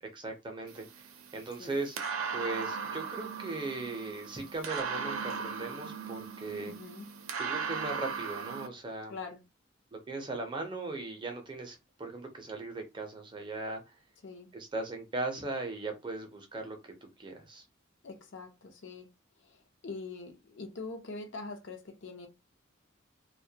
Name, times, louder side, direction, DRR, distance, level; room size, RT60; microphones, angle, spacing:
voice 1, 0.1-1.0 1.3-2.0 2.3-6.7 7.4-9.2 9.9-13.8 14.5-16.8 17.2-17.6, right 3 dB, 25° right, 0.5 m, -38 dB
sound 1, 0.7-8.7, right 5 dB, 80° right, 0.5 m, -38 dB
voice 2, 6.6-7.1 9.1-9.4 14.2-14.5 18.0-19.1 19.4-22.3, left 3 dB, 60° left, 0.5 m, -43 dB
2.1 x 2.1 x 2.7 m
head